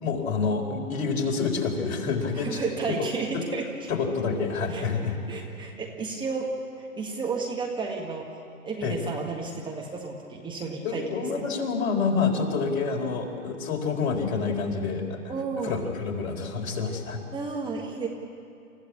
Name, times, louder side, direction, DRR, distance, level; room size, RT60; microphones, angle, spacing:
voice 1, 0.0-2.6 3.3-3.4 3.9-5.2 8.8-9.0 10.8-15.3 15.6-17.2, left 5 dB, 50° left, 1 dB, 4.3 m, -28 dB
voice 2, 2.3-3.9 4.7-4.9 5.3-8.3 8.6-11.5 15.3-15.9 17.3-18.1, right 4 dB, 10° right, 0 dB, 1.7 m, -32 dB
29.0 x 15.5 x 8.6 m, 2.4 s
hypercardioid pair, 130°, 41 cm